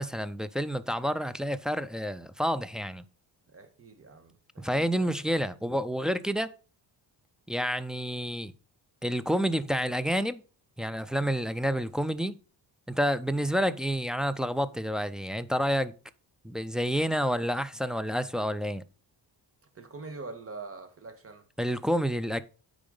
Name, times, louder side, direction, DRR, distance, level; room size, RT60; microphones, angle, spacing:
voice 1, 0.0-3.0 4.6-6.5 7.5-8.5 9.0-10.4 10.8-12.4 12.9-16.0 16.4-18.8 21.6-22.4, equal, ahead, 0.3 m, -29 dB
voice 2, 3.5-5.2 5.7-5.8 19.7-21.4, right 3 dB, 30° right, 1.6 m, -44 dB
8.7 x 4.9 x 5.4 m
cardioid pair, 125°, 44 cm